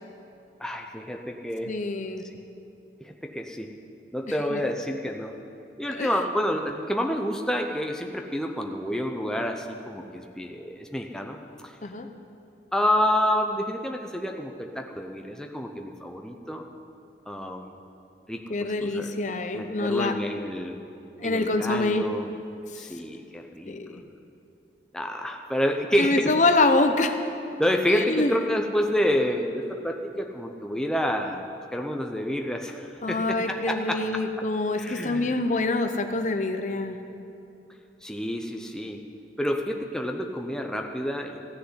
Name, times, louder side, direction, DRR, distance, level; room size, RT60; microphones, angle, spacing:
voice 1, 0.6-1.8 3.0-3.7 4.1-5.3 5.8-11.7 12.7-16.7 17.3-17.8 18.3-19.1 19.5-20.8 21.2-22.3 22.8-24.0 24.9-26.3 27.6-34.2 34.8-35.4 38.0-39.0 39.4-41.5, equal, 5° left, 2 dB, 0.6 m, -29 dB
voice 2, 1.7-2.2 4.5-4.6 5.9-6.1 11.8-12.1 18.5-20.2 21.2-22.1 22.7-22.8 23.7-24.0 26.0-27.2 27.9-28.4 33.0-37.0, left 2 dB, 45° left, 7 dB, 0.8 m, -25 dB
15.0 x 6.6 x 9.6 m, 2.8 s
head